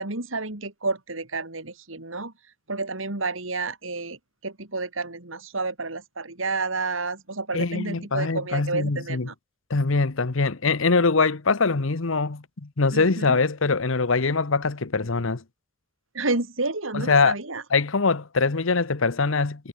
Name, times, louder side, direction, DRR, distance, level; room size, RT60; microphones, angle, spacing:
voice 1, 0.0-2.3 2.7-9.3 12.9-13.4 16.1-17.6, right 3 dB, 75° right, 3.4 m, -30 dB
voice 2, 7.5-9.3 9.7-15.4 16.9-17.3 17.7-19.7, left 4 dB, 80° left, 1.1 m, -23 dB
head